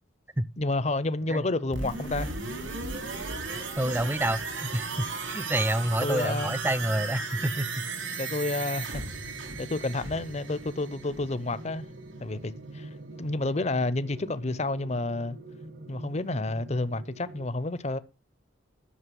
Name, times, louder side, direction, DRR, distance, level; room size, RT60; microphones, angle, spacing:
voice 1, 0.6-2.3 6.0-6.5 8.2-9.0 9.6-11.8 12.2-12.9 13.2-15.4 15.9-18.0, left 2 dB, 35° left, 0.7 m, -30 dB
sound 1, 1.2-17.5, right 1 dB, 55° right, 1.1 m, -45 dB
sound 2, 1.7-11.4 11.8-11.9, right 4 dB, 85° right, 3.7 m, -36 dB
voice 2, 3.8-8.2, right 1 dB, 10° right, 0.5 m, -29 dB
11.0 x 6.6 x 7.7 m
head